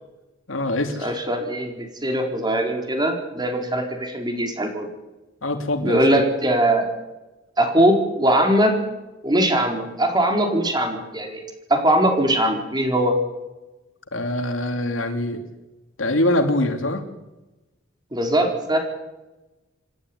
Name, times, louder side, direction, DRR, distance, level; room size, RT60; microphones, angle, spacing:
voice 1, 0.5-1.1 5.4-6.2 14.1-15.4 16.0-17.0, left 1 dB, 80° left, 6 dB, 3.0 m, -23 dB
voice 2, 1.0-4.9 5.8-6.9 7.6-8.7 9.2-11.4 11.7-13.2 18.1-18.8, right 1 dB, 20° right, 3 dB, 4.4 m, -21 dB
27.5 x 12.5 x 9.6 m, 1.1 s
head